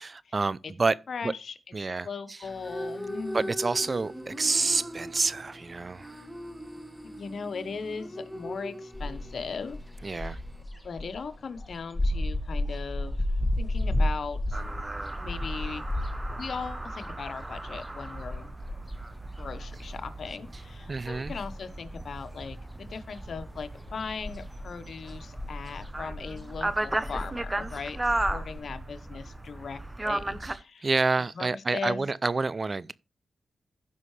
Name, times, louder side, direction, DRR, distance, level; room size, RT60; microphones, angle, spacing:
voice 1, 0.0-1.0 1.2-1.3 1.7-2.1 3.3-6.2 10.0-10.4 20.9-21.3 30.4-30.6 30.8-32.9, right 3 dB, 40° right, 0.5 m, -28 dB
voice 2, 1.1-1.6 2.0-3.5 7.1-10.4 10.8-13.3 13.6-14.6 15.2-15.8 16.3-18.5 19.4-30.9 31.3-32.1, left 5 dB, 65° left, 1.0 m, -38 dB
sound 1, 2.4-10.6, equal, ahead, 2.0 m, -40 dB
sound 2, 8.9-20.6 20.8-22.1 22.4-28.6, left 1 dB, 15° left, 1.7 m, -33 dB
sound 3, 14.5-30.5, right 2 dB, 20° right, 0.9 m, -36 dB
15.0 x 5.5 x 3.3 m
cardioid pair, 60°, 0 cm